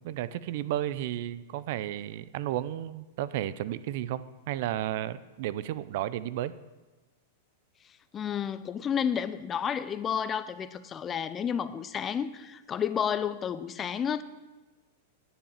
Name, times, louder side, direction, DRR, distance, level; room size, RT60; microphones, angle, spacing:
voice 1, 0.0-6.5, right 12 dB, 60° right, 16 dB, 0.5 m, -33 dB
voice 2, 8.1-14.2, left 8 dB, 25° left, 14 dB, 0.5 m, -31 dB
10.5 x 7.1 x 7.4 m, 1.2 s
hypercardioid pair, 130°, 0 cm